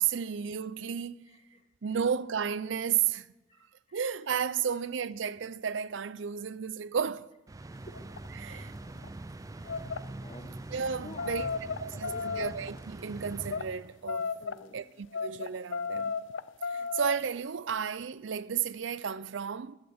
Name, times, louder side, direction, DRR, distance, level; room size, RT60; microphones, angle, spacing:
voice 1, 0.0-1.2 1.8-3.3 3.9-7.3 8.4-8.7 10.7-11.5 11.8-14.3 14.7-16.1 16.7-19.7, right 7 dB, 75° right, 0.5 m, -33 dB
voice 2, 1.3-1.7 3.5-4.0 7.6-7.8 8.4-8.8 9.5-9.8 10.2-10.5 11.0-11.5 11.9-12.4 14.4-14.9, left 2 dB, 35° left, 1.3 m, -50 dB
sound 1, 7.5-14.2, right 2 dB, 20° right, 0.4 m, -44 dB
sound 2, 7.9-8.3 8.9-9.1 9.6-10.0 10.7-12.8 13.4-13.7 14.1-14.6 15.1-17.2, left 5 dB, 75° left, 0.5 m, -34 dB
12.0 x 10.5 x 7.9 m
head